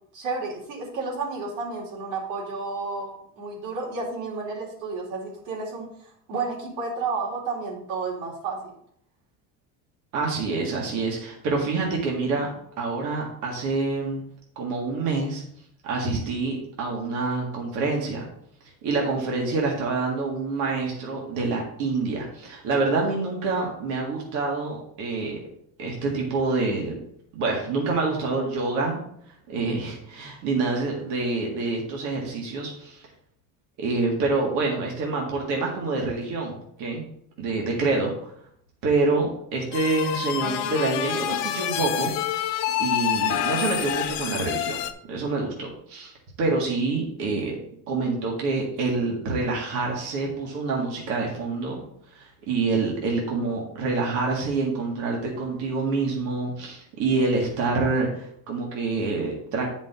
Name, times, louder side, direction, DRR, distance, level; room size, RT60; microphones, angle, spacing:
voice 1, 0.1-5.9 6.3-8.7, right 4 dB, 75° right, -3 dB, 3.1 m, -31 dB
voice 2, 10.1-12.5 12.8-14.2 14.6-15.4 15.8-18.3 18.8-25.4 25.8-27.0 27.3-29.0 29.5-33.1 33.8-37.1 37.4-38.3 38.8-42.1 42.8-44.8 45.1-46.1 46.4-47.6 47.9-51.8 52.1-59.7, right 3 dB, 55° right, -1 dB, 2.1 m, -26 dB
sound 1, 39.7-44.9, left 11 dB, 50° left, 0.7 m, -27 dB
9.7 x 5.2 x 3.8 m, 0.68 s
cardioid pair, 170°, 37 cm